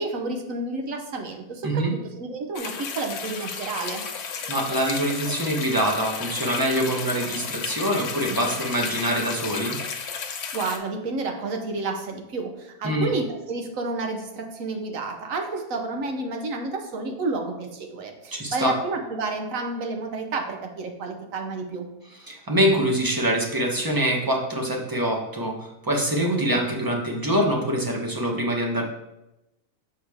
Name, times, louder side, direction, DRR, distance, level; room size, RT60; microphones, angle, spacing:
voice 1, 0.0-4.1 10.5-21.9, right 3 dB, 65° right, 4 dB, 1.2 m, -30 dB
sound 1, 2.6-10.8, left 6 dB, 80° left, 1.2 m, -33 dB
voice 2, 4.5-9.7 12.8-13.1 18.3-18.7 22.3-28.8, equal, 20° right, 0 dB, 0.7 m, -24 dB
6.5 x 4.7 x 3.5 m, 0.92 s
omnidirectional pair, 1.6 m